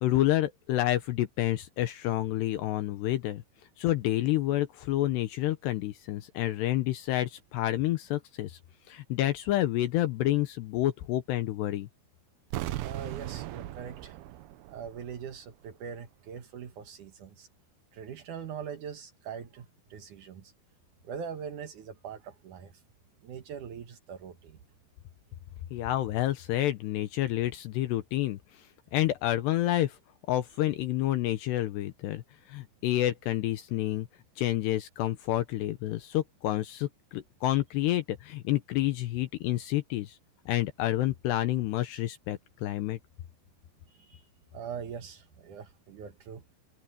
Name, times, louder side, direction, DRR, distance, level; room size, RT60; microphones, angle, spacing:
voice 1, 0.0-3.4 3.8-8.6 8.9-11.9 25.7-28.7 28.9-30.0 30.3-32.2 32.5-34.1 34.4-40.2 40.5-43.0, left 14 dB, 75° left, 2.7 m, -29 dB
sound 1, 12.5-15.4 15.7-15.8, right 15 dB, 85° right, 2.3 m, -38 dB
voice 2, 12.8-14.2 14.7-17.5 17.9-20.5 21.0-22.8 23.2-24.6 44.0-44.2 44.5-46.4, right 7 dB, 70° right, 2.0 m, -42 dB
omnidirectional pair, 5.5 m